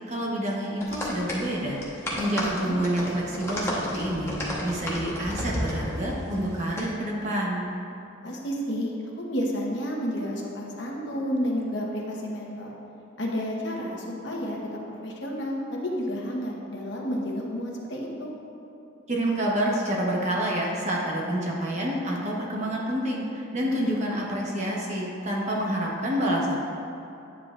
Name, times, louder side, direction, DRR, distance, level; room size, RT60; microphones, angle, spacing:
voice 1, 0.1-4.3 4.6-7.7 19.1-26.6, right 1 dB, 35° right, -3 dB, 1.0 m, -28 dB
sound 1, 0.8-6.8, equal, 15° left, 1.0 m, -33 dB
voice 2, 2.4-2.8 8.2-12.7 13.2-18.3, equal, 60° left, -2 dB, 1.0 m, -31 dB
9.4 x 7.5 x 2.4 m, 2.9 s
head